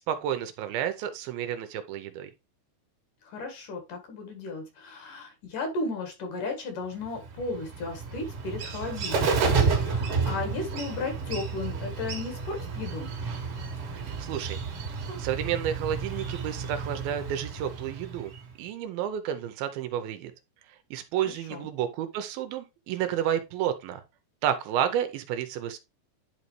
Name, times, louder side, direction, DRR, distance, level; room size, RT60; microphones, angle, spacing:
voice 1, 0.1-2.3 14.2-14.6 15.2-18.3 18.6-20.3 20.9-24.0 24.4-25.8, right 10 dB, 80° right, 2.4 m, -31 dB
voice 2, 3.2-13.1 21.2-21.7, left 3 dB, 60° left, 2.9 m, -35 dB
Bird, 7.0-18.5, right 5 dB, 50° right, 1.7 m, -31 dB
10.5 x 4.1 x 3.1 m
omnidirectional pair, 4.5 m